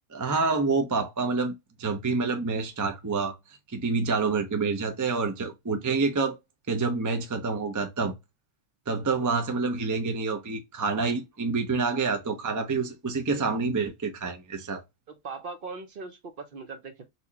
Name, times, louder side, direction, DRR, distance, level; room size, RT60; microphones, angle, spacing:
voice 1, 0.1-3.4 3.7-6.4 6.7-8.1 8.9-14.8, right 4 dB, 25° right, 0.4 m, -27 dB
voice 2, 15.1-17.0, right 4 dB, 50° right, 0.8 m, -39 dB
4.3 x 2.2 x 2.7 m
omnidirectional pair, 1.3 m